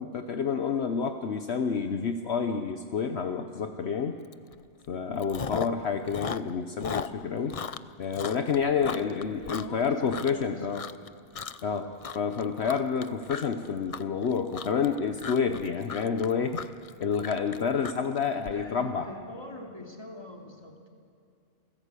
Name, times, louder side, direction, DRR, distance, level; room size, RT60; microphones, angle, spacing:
voice 1, 0.0-4.2 4.9-7.6 8.0-10.9 11.6-16.7 17.0-19.1, left 6 dB, 65° left, 7 dB, 1.2 m, -29 dB
Chewing mastication, 4.3-4.5 4.8-5.8 6.1-10.4 10.7-11.1 11.3-11.7 12.0-18.5, left 6 dB, 40° left, 0.5 m, -37 dB
voice 2, 8.7-11.0 18.5-20.9, left 2 dB, 20° left, 1 dB, 2.7 m, -44 dB
28.5 x 16.5 x 8.3 m, 2.4 s
omnidirectional pair, 1.2 m